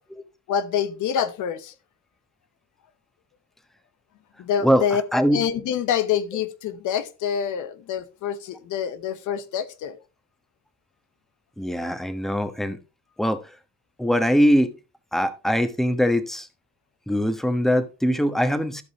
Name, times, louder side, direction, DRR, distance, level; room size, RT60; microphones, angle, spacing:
voice 1, 0.5-1.7 4.4-5.0 5.3-10.0, left 8 dB, 80° left, 1.1 m, -26 dB
voice 2, 5.1-5.4 11.6-12.8 13.2-13.4 14.0-14.7 15.1-16.5 17.1-18.8, equal, ahead, 1.1 m, -22 dB
15.5 x 5.4 x 3.0 m
cardioid pair, 90°, 30 cm